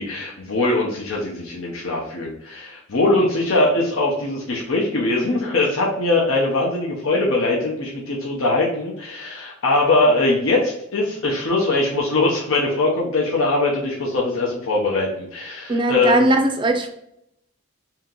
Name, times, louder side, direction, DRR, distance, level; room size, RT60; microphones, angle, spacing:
voice 1, 0.0-16.2, left 2 dB, 90° left, -3 dB, 0.8 m, -21 dB
voice 2, 15.7-16.9, right 2 dB, 25° right, 5 dB, 0.4 m, -19 dB
2.9 x 2.8 x 3.6 m, 0.76 s
head